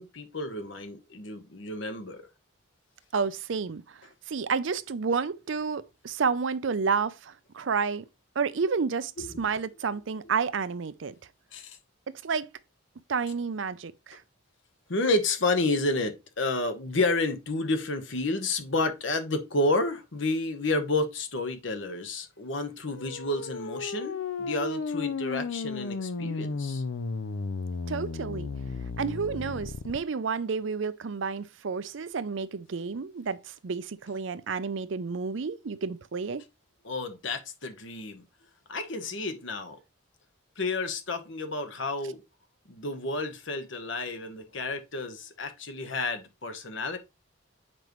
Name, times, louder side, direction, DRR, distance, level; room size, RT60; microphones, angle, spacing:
voice 1, 0.0-2.3 9.2-9.4 11.5-11.8 14.9-26.8 36.8-38.2 38.7-39.8 40.6-42.2 42.7-47.0, left 2 dB, 65° left, 1.2 m, -30 dB
voice 2, 3.1-4.0 4.3-8.0 8.4-11.1 12.1-12.5 13.1-14.2 27.9-28.5 29.0-36.4, right 5 dB, 65° right, 0.5 m, -30 dB
sound 1, 22.9-30.0, left 3 dB, 80° left, 0.6 m, -34 dB
7.5 x 5.2 x 3.1 m
head